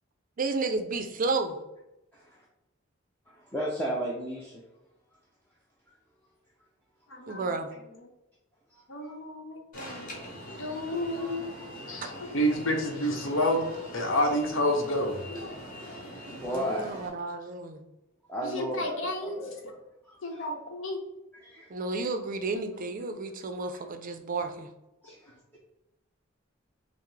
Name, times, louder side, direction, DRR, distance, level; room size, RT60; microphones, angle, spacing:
voice 1, 0.4-1.6 7.3-7.7 16.4-17.8 21.7-24.7, right 3 dB, 40° right, 6 dB, 0.5 m, -32 dB
voice 2, 3.3-4.6 7.2-7.3 8.7-9.1 10.6-10.7 16.3-16.9 18.3-19.6 20.0-20.5 21.4-21.7 25.0-25.3, equal, 10° left, -4 dB, 0.5 m, -35 dB
voice 3, 7.1-7.6 8.9-10.1 10.6-11.5 11.9-15.2 18.5-19.3 20.2-21.0, equal, 70° left, 2 dB, 0.8 m, -29 dB
Alarm, 9.7-17.1, equal, 45° left, 1.1 m, -42 dB
5.6 x 2.0 x 3.2 m, 0.94 s
head